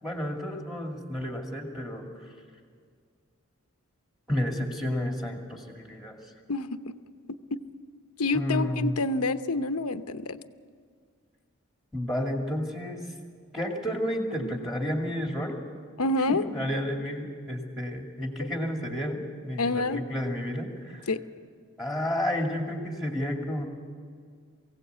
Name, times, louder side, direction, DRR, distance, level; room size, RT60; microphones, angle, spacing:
voice 1, 0.0-2.1 4.3-6.2 8.3-9.0 11.9-13.1 13.5-15.6 16.3-21.1 21.8-23.7, equal, ahead, 1 dB, 2.4 m, -31 dB
voice 2, 6.5-6.9 7.5-7.6 8.2-10.4 16.0-16.5 19.6-20.0 21.1-21.2, left 2 dB, 85° left, 11 dB, 0.8 m, -27 dB
23.0 x 16.5 x 8.2 m, 2.1 s
head